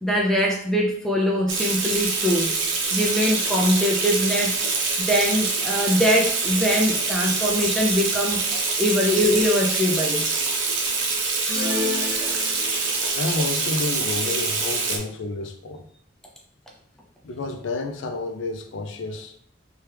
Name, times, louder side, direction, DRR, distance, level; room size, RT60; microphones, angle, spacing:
voice 1, 0.0-2.5 2.9-4.6 5.1-8.4 8.8-10.3, equal, ahead, -2 dB, 0.4 m, -22 dB
Water tap faucet / Sink (filling or washing), 1.5-15.0, right 4 dB, 75° right, 0.5 m, -25 dB
sound 1, 11.5-13.0, left 3 dB, 60° left, 1.3 m, -30 dB
voice 2, 13.2-15.8 17.2-19.3, left 3 dB, 75° left, 5 dB, 0.4 m, -30 dB
2.9 x 2.3 x 3.3 m, 0.65 s
head